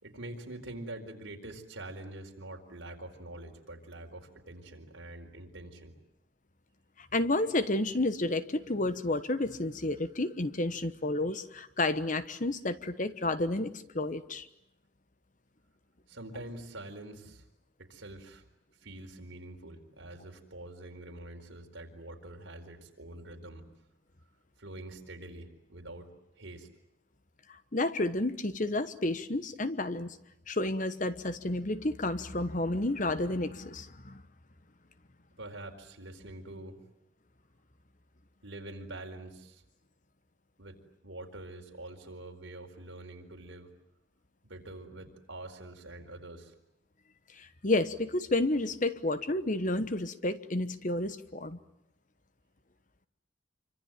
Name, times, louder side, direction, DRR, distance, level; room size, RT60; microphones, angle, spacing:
voice 1, 0.0-5.9 16.1-17.5 17.8-18.4 18.8-23.6 24.6-26.7 35.4-36.8 38.4-39.6 40.6-40.8 41.0-43.7 44.4-46.5, right 1 dB, 70° right, 3 dB, 4.5 m, -45 dB
voice 2, 7.0-14.5 27.7-30.2 30.5-34.2 47.4-51.6, left 2 dB, 40° left, 12 dB, 1.1 m, -31 dB
26.5 x 25.0 x 8.9 m, 0.78 s
head